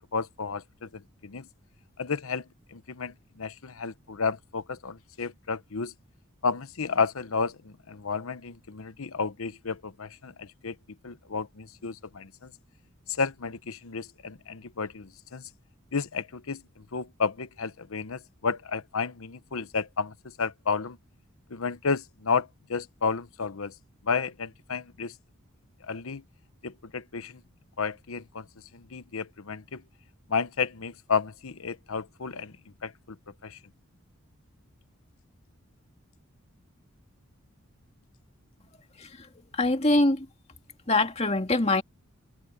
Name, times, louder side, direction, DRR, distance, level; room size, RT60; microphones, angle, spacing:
voice 1, 0.0-1.5 2.0-5.9 6.4-10.8 11.0-12.5 13.1-15.5 15.9-21.0 21.5-23.7 24.0-25.1 25.8-26.2 26.6-27.4 27.8-28.5 28.7-29.8 30.3-32.5 32.8-33.2 33.4-33.6, left 5 dB, 80° left, 0.9 m, -32 dB
voice 2, 39.5-40.3 40.9-41.8, left 2 dB, 30° left, 2.4 m, -23 dB
head